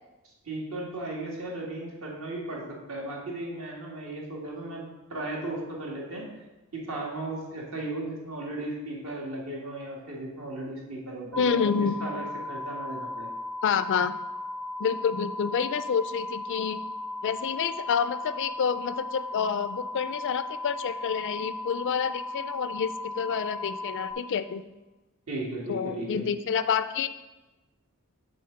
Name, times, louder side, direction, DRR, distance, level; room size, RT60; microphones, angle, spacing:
voice 1, 0.5-4.8 5.1-6.3 6.7-13.3 25.3-26.2, right 2 dB, 65° right, -3 dB, 1.9 m, -36 dB
sound 1, 11.3-24.1, left 2 dB, ahead, 0.5 m, -36 dB
voice 2, 11.4-11.9 13.6-14.1 14.8-16.8 17.2-24.6 25.7-27.1, left 7 dB, 55° left, 13 dB, 0.3 m, -28 dB
6.4 x 4.3 x 5.6 m, 1.1 s
head